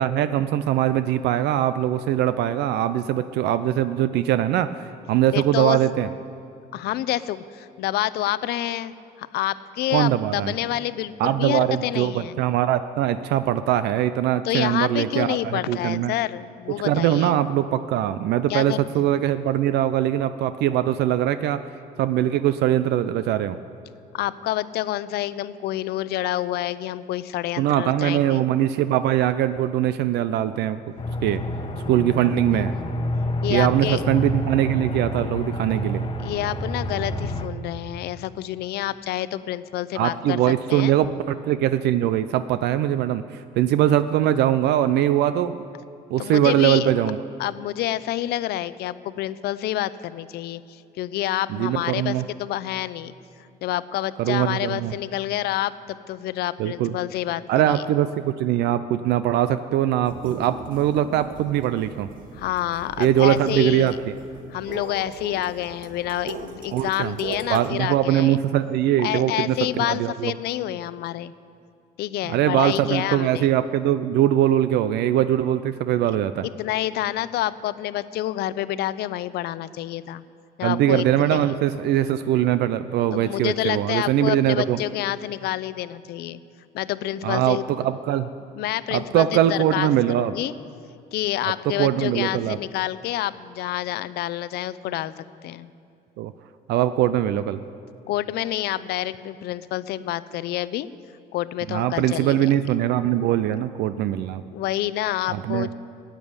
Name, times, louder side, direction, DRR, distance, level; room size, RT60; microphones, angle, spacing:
voice 1, 0.0-6.1 9.9-10.5 11.2-16.1 16.8-21.6 22.0-23.6 27.6-30.8 31.2-31.4 31.9-32.7 33.5-36.1 39.9-45.6 46.1-47.2 51.5-52.2 54.2-54.9 56.6-57.0 57.5-62.1 63.0-64.1 66.7-67.1 67.5-70.3 72.3-76.5 80.6-84.8 87.2-88.3 88.9-90.3 91.6-92.6 96.2-96.3 96.7-97.6 101.7-104.4 105.3-105.7, right 12 dB, 80° right, 12 dB, 0.5 m, -22 dB
voice 2, 5.3-5.8 6.7-12.3 14.4-17.4 18.5-19.1 24.1-28.4 33.4-34.1 36.2-40.9 46.2-46.9 47.4-53.1 53.6-57.8 62.3-64.0 64.5-68.4 69.0-71.3 72.0-73.5 76.4-80.2 80.6-81.5 83.1-86.4 86.7-87.6 88.5-89.9 90.2-90.5 91.1-95.7 98.1-100.9 101.3-102.5 104.5-105.7, left 14 dB, 75° left, 16 dB, 0.6 m, -28 dB
Aircraft, 31.0-37.5, left 1 dB, 30° left, 1.1 m, -28 dB
sound 1, 60.0-67.7, right 4 dB, 55° right, 1.4 m, -40 dB
13.5 x 9.1 x 9.6 m, 2.4 s
cardioid pair, 110°, 17 cm